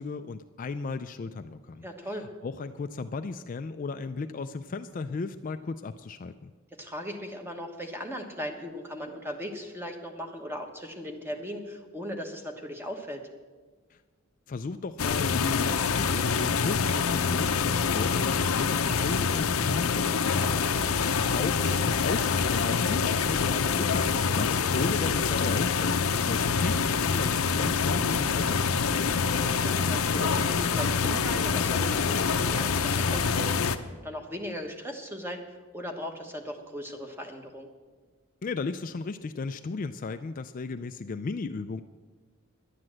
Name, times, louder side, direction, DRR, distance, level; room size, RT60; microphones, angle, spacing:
voice 1, 0.0-1.9 2.4-6.5 13.9-14.0 14.5-20.4 21.3-29.3 38.4-41.8, left 4 dB, 40° left, 9 dB, 0.3 m, -35 dB
voice 2, 1.8-2.3 6.8-13.2 20.4-20.9 29.4-37.7, equal, 10° right, 4 dB, 1.2 m, -38 dB
sound 1, 15.0-33.8, left 5 dB, 80° left, 0.7 m, -26 dB
11.0 x 9.6 x 7.6 m, 1.4 s
head